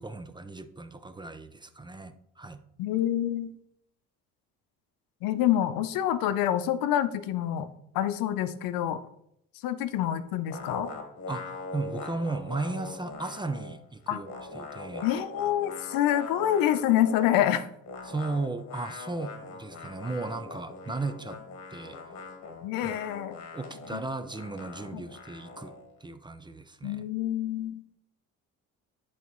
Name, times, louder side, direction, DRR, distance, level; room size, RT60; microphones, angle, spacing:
voice 1, 0.0-2.6 11.3-14.3 14.5-15.1 18.1-21.4 21.7-22.0 22.8-23.0 23.5-25.7 26.0-27.0, right 3 dB, 15° right, 10 dB, 0.5 m, -36 dB
voice 2, 2.8-3.6 5.2-7.7 7.9-9.0 9.6-10.9 14.1-14.2 15.0-17.7 22.6-23.4 23.9-24.0 24.9-25.1 26.8-27.8, left 11 dB, 80° left, 12 dB, 0.6 m, -27 dB
sound 1, 10.5-13.8 14.0-17.4 17.8-25.9, left 3 dB, 55° left, 1.5 m, -42 dB
10.5 x 4.1 x 3.0 m, 0.75 s
cardioid pair, 95°, 34 cm